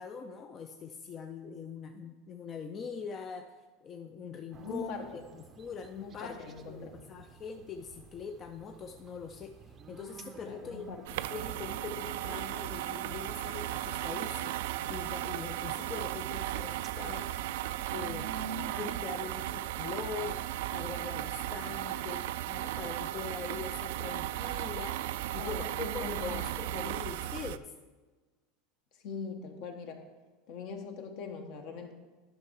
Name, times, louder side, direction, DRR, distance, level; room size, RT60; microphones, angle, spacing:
voice 1, 0.0-3.5 3.8-4.9 5.3-6.4 6.7-10.8 11.3-17.4 17.9-18.3 18.8-20.4 20.7-27.7, left 6 dB, 30° left, 6 dB, 0.5 m, -42 dB
sound 1, 4.5-24.2, right 5 dB, 30° right, 0.6 m, -52 dB
voice 2, 4.6-5.2 6.0-7.1 10.4-11.0 11.3-11.4 25.4-27.1 29.0-30.0 30.5-31.9, left 4 dB, 60° left, 5 dB, 1.3 m, -42 dB
sound 2, 11.1-27.6, right 14 dB, 75° right, 0.3 m, -36 dB
10.5 x 5.6 x 4.7 m, 1.3 s
supercardioid pair, 135°, 0 cm